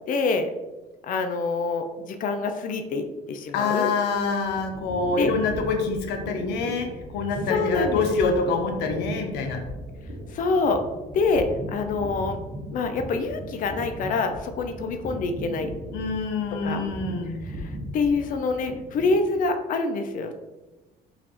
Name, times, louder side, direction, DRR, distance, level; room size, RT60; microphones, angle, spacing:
voice 1, 0.1-0.5 1.0-3.9 5.1-5.3 7.5-8.3 10.3-10.8 11.1-12.4 12.7-15.7 16.6-16.8 17.6-20.3, left 4 dB, 55° left, 7 dB, 0.5 m, -26 dB
voice 2, 3.5-9.6 15.9-17.4, left 4 dB, 85° left, 4 dB, 0.8 m, -26 dB
sound 1, 4.1-19.5, equal, 75° right, 1.5 m, -38 dB
4.1 x 2.5 x 4.3 m, 1.1 s
cardioid pair, 110°, 17 cm